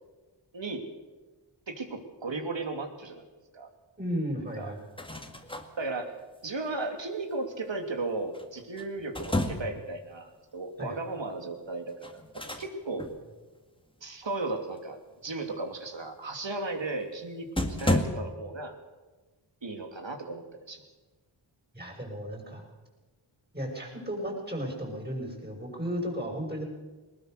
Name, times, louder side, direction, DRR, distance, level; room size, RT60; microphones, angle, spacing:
voice 1, 0.5-0.8 1.7-3.2 3.5-3.7 4.6-4.7 5.8-6.2 6.4-13.1 14.0-18.7 19.6-20.8, right 2 dB, 60° right, 5 dB, 2.9 m, -35 dB
voice 2, 4.0-4.8 10.8-11.0 21.7-22.6 23.5-26.6, equal, 20° right, 0 dB, 6.6 m, -34 dB
sound 1, 4.8-5.7 8.3-9.9 12.0-12.7 13.0-13.2 17.0-17.1 17.6-18.1, left 1 dB, 10° left, 2.0 m, -30 dB
20.0 x 20.0 x 6.7 m, 1.2 s
wide cardioid pair, 65°, 49 cm